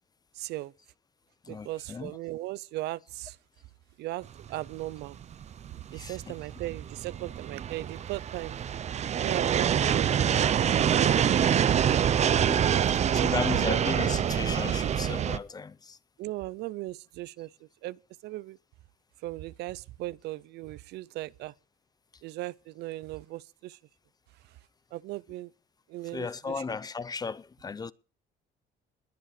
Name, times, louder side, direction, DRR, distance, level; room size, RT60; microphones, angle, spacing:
voice 1, 0.3-0.7 1.5-3.4 4.0-5.2 5.9-8.6 9.2-10.3 10.7-11.6 12.6-12.9 13.2-13.8 16.2-17.5 17.8-18.6 19.2-21.5 22.2-23.8 24.9-25.5 25.9-26.6, right 17 dB, 80° right, 0.5 m, -37 dB
voice 2, 1.4-2.1 5.9-6.4 12.5-12.7 13.1-16.0 26.1-27.9, left 5 dB, 25° left, 0.6 m, -35 dB
sound 1, 4.5-15.4, right 9 dB, 40° right, 0.7 m, -26 dB
21.0 x 7.4 x 4.9 m
cardioid pair, 110°, 17 cm